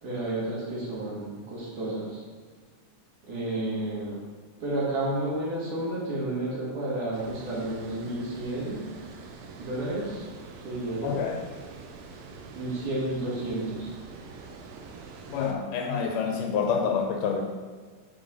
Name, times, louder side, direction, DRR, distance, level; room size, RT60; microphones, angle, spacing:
voice 1, 0.0-2.2 3.3-4.2 4.6-8.9 9.6-10.3 10.6-11.2 12.6-13.9, right 1 dB, 65° right, -6 dB, 3.5 m, -31 dB
Water, 7.1-15.5, right 4 dB, 80° right, 1.5 m, -45 dB
voice 2, 11.0-11.4 15.3-17.4, left 6 dB, 80° left, 3 dB, 2.0 m, -27 dB
9.8 x 4.6 x 3.9 m, 1.5 s
omnidirectional pair, 4.0 m